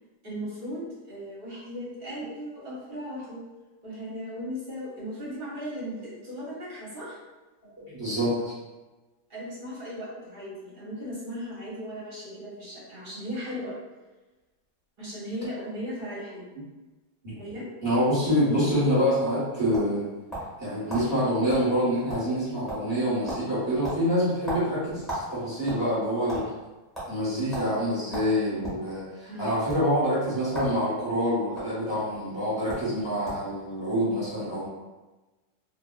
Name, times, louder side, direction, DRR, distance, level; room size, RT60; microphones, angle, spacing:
voice 1, 0.2-3.4 3.8-7.2 9.3-13.7 15.0-16.4 17.3-17.7 29.3-29.5, equal, 40° right, -8 dB, 0.9 m, -37 dB
voice 2, 7.9-8.5 17.2-17.4 17.8-20.0 20.6-26.4 27.1-34.7, equal, 15° right, -10 dB, 1.2 m, -26 dB
sound 1, 19.2-20.6 20.9-21.1 21.5-21.7 21.9-22.4 22.7-23.0 23.3-23.5 23.8-25.3 25.6-26.4 26.9-27.1 27.5-27.7 28.1-28.8 29.6-29.8 30.5-30.8 31.0-31.6 32.4-32.5 32.7-32.9 33.2-33.5, right 1 dB, ahead, 0.7 m, -35 dB
2.7 x 2.6 x 2.4 m, 1.2 s
omnidirectional pair, 1.9 m